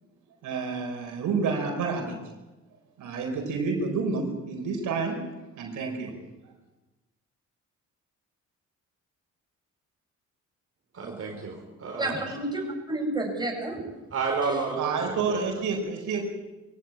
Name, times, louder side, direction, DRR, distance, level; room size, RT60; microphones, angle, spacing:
voice 1, 0.4-2.2 3.0-5.2 5.6-6.1 14.8-16.2, right 4 dB, 80° right, 3 dB, 4.8 m, -29 dB
voice 2, 10.9-12.2 14.1-15.6, right 4 dB, 50° right, 0 dB, 4.4 m, -31 dB
voice 3, 12.0-13.8 14.5-14.6, right 2 dB, 15° right, 0 dB, 7.7 m, -30 dB
23.0 x 16.5 x 8.8 m, 1.1 s
cardioid pair, 90°, 30 cm